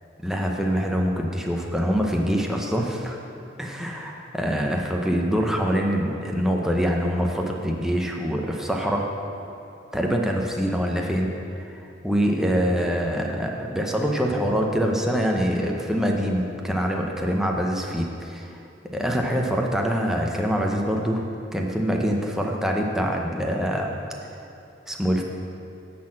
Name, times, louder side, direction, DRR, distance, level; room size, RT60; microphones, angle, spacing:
voice 1, 0.2-3.2 3.6-9.1 9.9-11.3 11.6-11.8 12.0-18.5 18.9-21.3 21.5-23.9 24.9-25.2, equal, 5° right, 0 dB, 0.7 m, -24 dB
10.0 x 4.3 x 7.5 m, 2.8 s
head